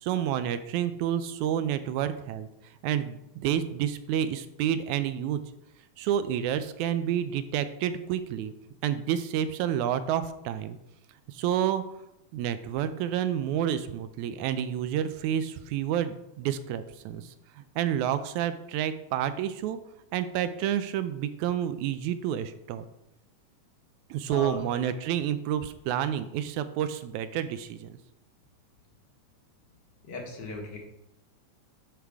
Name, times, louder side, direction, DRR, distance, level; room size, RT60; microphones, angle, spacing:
voice 1, 0.0-2.5 2.8-5.4 6.0-8.5 8.8-10.8 11.3-11.8 12.3-17.3 17.8-19.8 20.1-22.9 24.1-28.0, right 10 dB, 80° right, 11 dB, 1.9 m, -29 dB
voice 2, 24.3-24.6 30.0-30.8, left 3 dB, 50° left, 1 dB, 1.4 m, -37 dB
11.0 x 4.8 x 3.5 m, 0.85 s
omnidirectional pair, 3.4 m